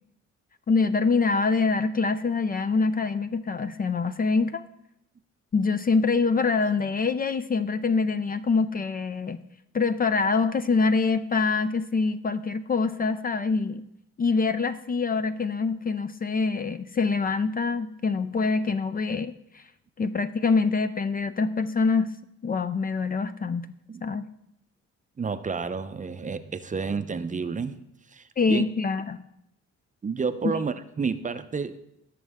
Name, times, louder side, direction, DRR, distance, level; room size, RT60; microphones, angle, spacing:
voice 1, 0.7-4.6 5.5-9.4 9.7-13.9 14.2-19.6 20.0-22.1 22.4-23.7 24.0-24.3 28.4-29.2, left 4 dB, 30° left, 12 dB, 0.4 m, -25 dB
voice 2, 25.2-27.8 28.1-28.6 30.0-31.8, right 5 dB, 25° right, 11 dB, 0.6 m, -30 dB
17.5 x 6.4 x 3.5 m, 0.80 s
cardioid pair, 90°, 30 cm